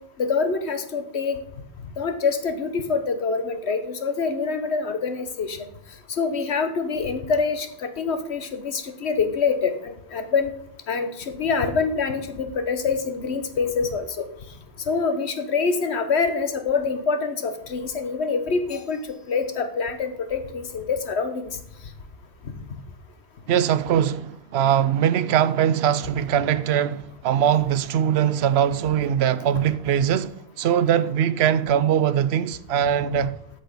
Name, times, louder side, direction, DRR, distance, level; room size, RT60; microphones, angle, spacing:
voice 1, 0.2-1.4 2.0-5.7 6.1-10.5 10.9-14.2 14.9-19.0 19.3-21.5, left 5 dB, 85° left, 1.4 m, -25 dB
voice 2, 23.5-33.3, right 9 dB, 75° right, 0.8 m, -21 dB
8.4 x 6.5 x 6.6 m
omnidirectional pair, 1.1 m